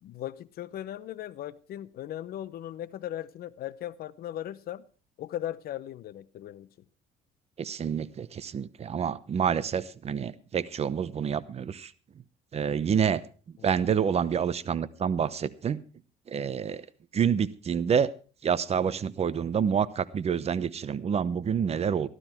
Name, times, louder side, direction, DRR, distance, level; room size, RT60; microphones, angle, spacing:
voice 1, 0.0-4.9 5.2-6.7 13.6-13.7, left 12 dB, 65° left, 0.8 m, -38 dB
voice 2, 7.6-11.9 12.5-13.2 13.6-15.8 16.3-16.8 17.1-18.1 18.4-22.1, right 7 dB, 40° right, 0.9 m, -28 dB
14.0 x 12.5 x 4.5 m
cardioid pair, 110°, 17 cm